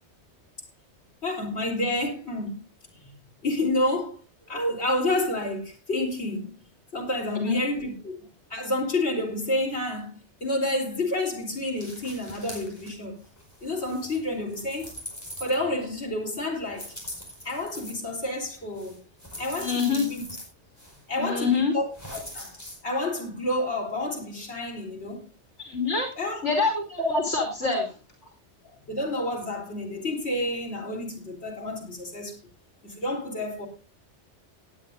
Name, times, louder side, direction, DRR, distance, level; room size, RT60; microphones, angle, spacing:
voice 1, 1.2-2.6 3.0-3.1 3.4-4.2 4.5-6.5 6.9-13.2 13.6-14.9 15.4-16.9 17.4-19.0 19.4-20.2 21.1-22.5 22.8-25.2 26.2-26.5 28.9-32.4 32.8-33.7, left 1 dB, 65° left, 3.9 m, -29 dB
voice 2, 7.3-7.6 19.6-20.0 21.2-21.7 25.6-26.1 26.4-27.9, left 4 dB, 85° left, 2.9 m, -25 dB
sound 1, 11.8-12.9 13.2-15.9 16.7-17.9 18.7-20.4 20.8-21.0 21.9-22.8, equal, 15° left, 4.9 m, -42 dB
18.0 x 9.6 x 2.6 m
omnidirectional pair, 1.2 m